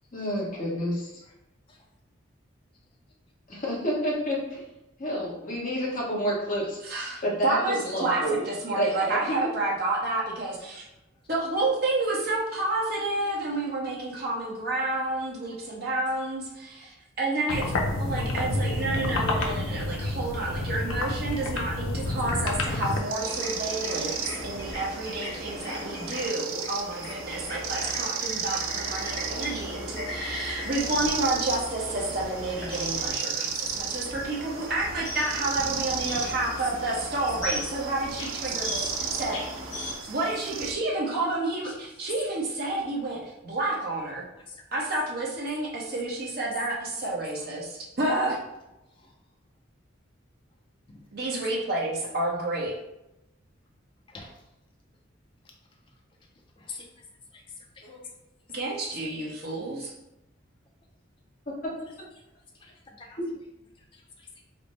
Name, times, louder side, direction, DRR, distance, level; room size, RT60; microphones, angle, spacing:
voice 1, 0.1-1.1 3.5-4.7 5.0-6.8 7.2-8.4 8.7-9.4 57.8-58.0 61.6-61.7 63.2-63.3, equal, 40° left, -5 dB, 1.0 m, -29 dB
voice 2, 6.8-10.9 11.3-39.4 40.1-44.2 44.7-48.4 51.1-52.8 58.5-59.9, right 2 dB, 50° right, -3 dB, 0.8 m, -30 dB
sound 1, 17.5-23.0, left 2 dB, 85° left, 0.5 m, -29 dB
sound 2, 22.8-40.7, right 6 dB, 85° right, 0.4 m, -35 dB
sound 3, 23.1-39.9, left 1 dB, 60° left, 1.1 m, -37 dB
voice 3, 56.6-56.9 57.3-57.4 57.8-57.9 62.6-63.2 63.9-64.3, left 4 dB, 25° left, 0 dB, 0.4 m, -46 dB
3.3 x 2.0 x 4.0 m, 0.91 s
head